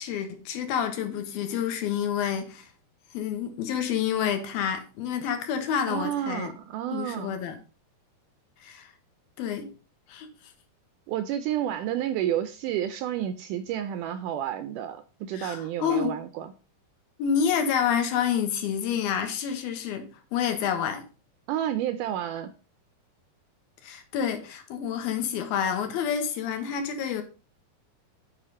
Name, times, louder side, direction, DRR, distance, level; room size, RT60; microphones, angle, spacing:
voice 1, 0.0-2.7 3.1-6.5 6.9-7.6 8.6-8.9 9.4-9.7 10.1-10.3 15.3-16.2 17.2-21.1 23.8-27.2, left 8 dB, 75° left, 3.0 m, -28 dB
voice 2, 5.9-7.4 11.1-16.5 21.5-22.5, right 11 dB, 85° right, 1.8 m, -30 dB
8.4 x 5.0 x 5.3 m
omnidirectional pair, 4.4 m